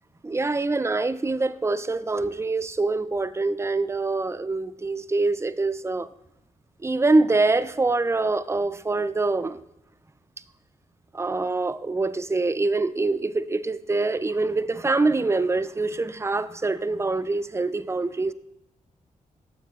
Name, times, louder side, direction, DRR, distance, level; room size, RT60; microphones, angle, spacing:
voice 1, 0.2-6.1 6.8-9.6 11.1-18.3, right 3 dB, 20° right, 13 dB, 0.4 m, -25 dB
9.4 x 7.1 x 2.4 m, 0.89 s
supercardioid pair, 50°, 15 cm